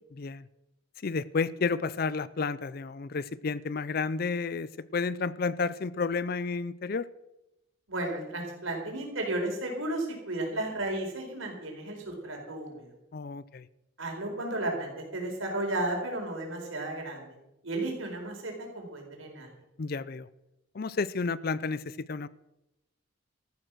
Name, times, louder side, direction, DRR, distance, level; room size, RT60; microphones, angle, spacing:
voice 1, 0.1-0.5 1.0-7.1 13.1-13.7 19.8-20.3 20.7-22.3, left 4 dB, 45° left, 18 dB, 0.5 m, -31 dB
voice 2, 7.9-12.9 14.0-17.3 17.6-19.5, right 1 dB, 80° right, 1 dB, 4.5 m, -33 dB
14.0 x 11.0 x 6.2 m, 0.92 s
head